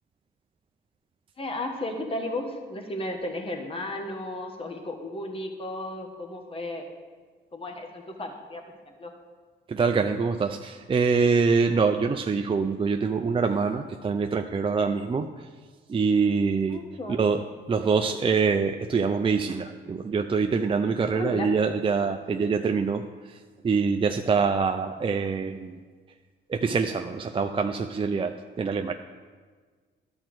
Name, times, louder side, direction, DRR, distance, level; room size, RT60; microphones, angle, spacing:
voice 1, 1.4-6.8 7.5-8.6 8.9-9.1 16.7-17.2 21.1-21.5, left 1 dB, 25° left, 3 dB, 1.3 m, -34 dB
voice 2, 9.7-15.3 15.9-16.8 17.1-17.4 17.7-23.0 23.6-25.7 26.5-28.9, right 5 dB, 25° right, 5 dB, 0.5 m, -25 dB
11.5 x 4.4 x 7.8 m, 1.5 s
cardioid pair, 90°, 20 cm